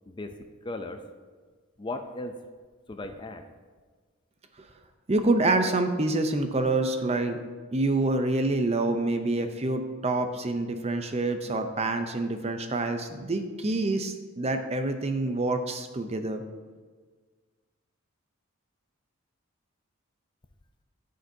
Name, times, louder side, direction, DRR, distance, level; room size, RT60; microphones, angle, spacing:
voice 1, 0.1-1.1 1.8-2.3 2.9-3.5, left 2 dB, 20° left, 7 dB, 0.4 m, -37 dB
voice 2, 5.1-7.4 7.7-16.4, right 2 dB, 30° right, 7 dB, 0.6 m, -27 dB
14.0 x 6.5 x 2.7 m, 1.5 s
head